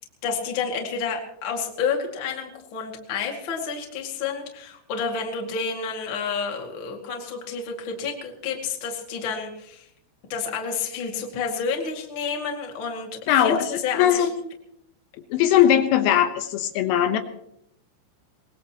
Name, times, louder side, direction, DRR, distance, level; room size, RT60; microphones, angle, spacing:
voice 1, 0.2-9.9 10.3-14.3, left 5 dB, 45° left, 1 dB, 1.6 m, -30 dB
voice 2, 13.3-14.4 15.3-17.2, left 10 dB, 85° left, 6 dB, 3.7 m, -20 dB
23.5 x 19.5 x 3.0 m, 0.75 s
omnidirectional pair, 5.8 m